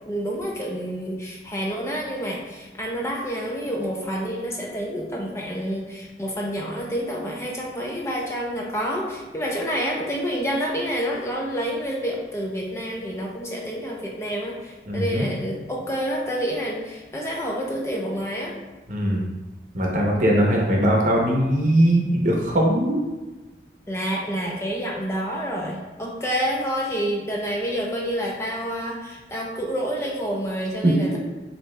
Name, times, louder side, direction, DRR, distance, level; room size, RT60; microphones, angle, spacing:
voice 1, 0.0-18.5 23.9-31.2, equal, 15° left, -2 dB, 0.5 m, -28 dB
voice 2, 14.9-15.3 18.9-19.3 19.7-23.0 30.8-31.2, right 1 dB, 45° right, -1 dB, 0.8 m, -20 dB
7.1 x 2.8 x 2.2 m, 1.2 s
head